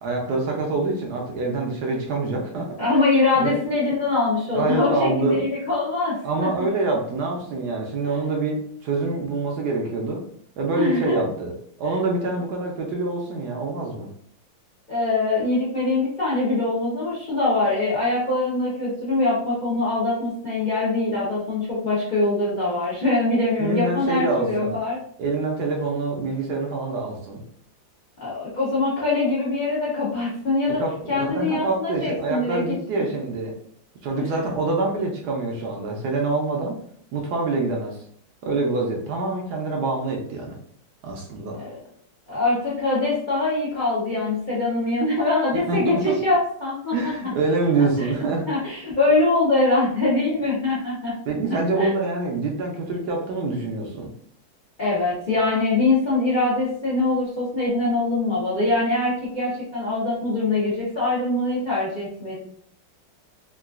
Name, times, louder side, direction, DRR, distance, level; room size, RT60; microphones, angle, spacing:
voice 1, 0.0-2.7 3.4-3.5 4.5-5.4 6.2-10.2 10.6-14.1 23.6-24.8 25.2-27.4 30.8-33.5 34.0-36.8 37.1-38.0 38.4-40.5 41.0-41.6 45.7-46.2 46.9-48.5 51.3-54.1, right 3 dB, 70° right, 0 dB, 1.0 m, -26 dB
voice 2, 2.8-6.5 8.0-8.2 10.8-11.2 14.9-25.0 28.2-30.8 31.1-32.6 33.0-33.1 34.1-34.4 41.6-41.7 42.3-47.1 47.8-48.1 48.5-51.1 51.7-52.0 54.8-62.4, left 2 dB, 60° left, -7 dB, 0.4 m, -23 dB
3.7 x 2.3 x 2.3 m, 0.64 s
omnidirectional pair, 2.1 m